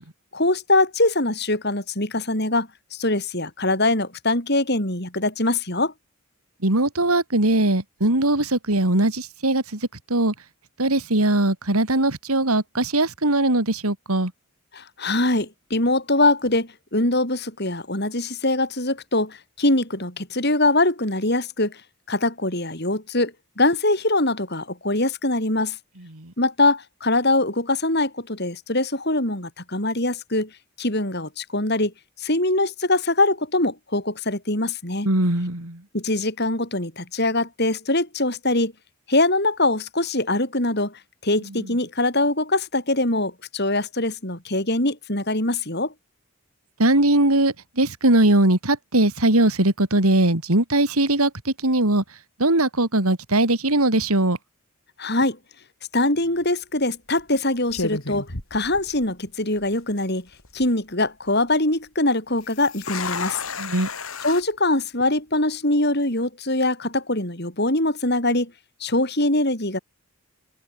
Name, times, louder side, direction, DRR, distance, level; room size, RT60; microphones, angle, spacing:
voice 1, 0.3-5.9 14.7-21.8 22.1-25.8 26.4-30.5 30.8-31.9 32.2-35.1 35.9-38.7 39.1-45.9 55.0-55.4 55.9-60.3 60.5-63.4 64.2-68.5 68.8-69.8, left 2 dB, 45° left, 7.0 m, -23 dB
voice 2, 6.6-9.8 10.1-10.3 10.8-14.3 26.1-26.3 35.0-35.8 46.8-52.0 52.4-54.4 63.6-63.9, right 1 dB, 80° right, 3.5 m, -20 dB
sound 1, 56.2-56.5 57.2-57.4 57.7-59.3 59.6-59.7 60.3-60.7 62.4-64.4, left 4 dB, 70° left, 4.8 m, -32 dB
open air
head